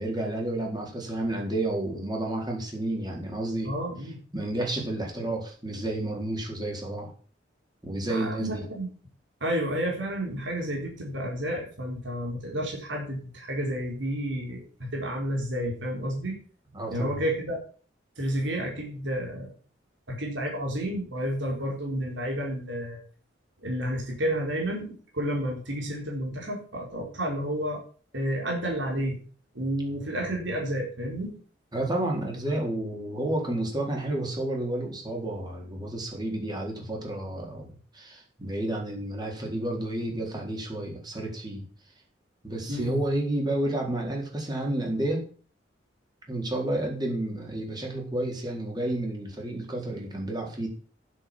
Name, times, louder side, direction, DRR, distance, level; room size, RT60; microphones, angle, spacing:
voice 1, 0.0-3.7 4.3-7.1 7.8-8.6 16.7-17.2 31.7-41.6 42.4-45.2 46.3-50.7, right 1 dB, 20° right, 0 dB, 4.1 m, -31 dB
voice 2, 3.6-4.2 8.1-8.9 9.4-16.4 16.9-17.6 18.2-19.5 20.1-23.0 23.6-27.8 28.1-29.2 29.5-31.3 42.7-43.0, equal, 75° right, 0 dB, 4.2 m, -31 dB
10.0 x 7.8 x 7.5 m, 0.41 s
head